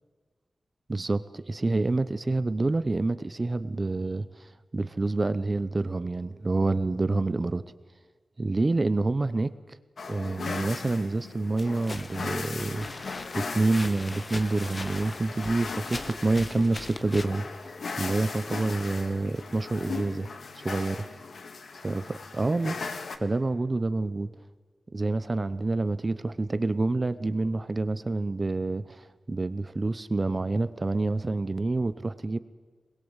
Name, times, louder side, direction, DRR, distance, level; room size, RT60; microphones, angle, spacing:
voice 1, 0.9-4.3 4.7-7.6 8.4-9.5 10.1-12.9 13.3-17.5 18.0-20.3 20.6-21.0 21.8-22.8 23.2-24.3 24.9-32.4, right 2 dB, 30° right, 14 dB, 0.7 m, -27 dB
sound 1, 10.0-23.2, left 4 dB, 70° left, 1.7 m, -38 dB
sound 2, 11.6-17.3, left 2 dB, 30° left, 1.5 m, -41 dB
23.5 x 21.5 x 8.1 m, 1.5 s
wide cardioid pair, 140°, 0 cm